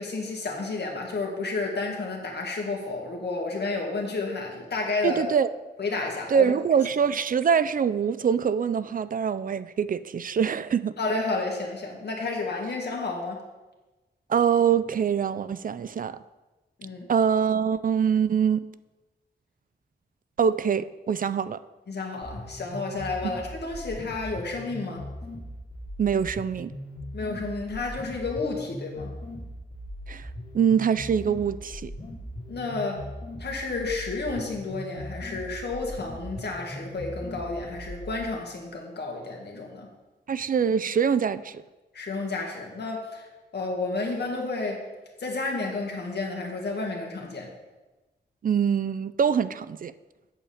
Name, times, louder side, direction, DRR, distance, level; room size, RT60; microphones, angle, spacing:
voice 1, 0.0-5.3 5.8-6.5 11.0-13.4 16.8-17.1 21.9-25.0 27.1-29.1 32.5-33.1 33.4-39.9 41.9-43.3 43.5-44.9 45.2-47.5, left 3 dB, 70° left, 0 dB, 1.9 m, -31 dB
voice 2, 5.0-5.5 6.3-10.9 14.3-16.2 17.1-18.6 20.4-21.6 23.2-23.3 26.0-26.7 30.1-30.3 30.5-31.9 40.3-41.6 48.4-49.9, right 7 dB, 50° right, 14 dB, 0.4 m, -24 dB
sound 1, 22.2-38.2, left 1 dB, 50° left, 2.8 m, -39 dB
8.4 x 4.9 x 7.1 m, 1.1 s
wide cardioid pair, 125°, 18 cm